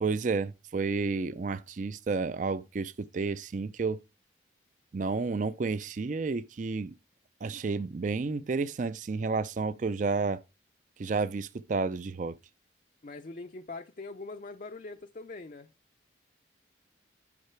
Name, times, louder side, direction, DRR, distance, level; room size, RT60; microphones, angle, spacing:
voice 1, 0.0-4.0 4.9-7.0 7.4-10.4 11.0-12.4, right 4 dB, 40° right, 0.4 m, -31 dB
voice 2, 13.0-15.7, left 3 dB, 40° left, 0.5 m, -42 dB
9.8 x 5.6 x 4.4 m
head